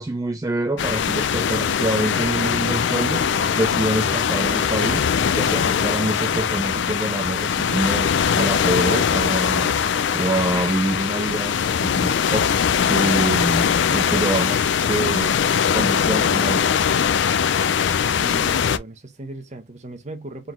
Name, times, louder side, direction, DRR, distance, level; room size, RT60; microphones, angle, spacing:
voice 1, 0.0-3.3 3.6-5.1 5.3-15.3 15.7-16.7, right 1 dB, 20° right, 0.4 m, -26 dB
sound 1, 0.8-18.8, left 7 dB, 60° left, 0.4 m, -21 dB
sound 2, 1.3-7.9, right 4 dB, 80° right, 0.9 m, -43 dB
voice 2, 18.1-20.5, right 2 dB, 35° right, 0.9 m, -37 dB
4.4 x 3.9 x 2.4 m
head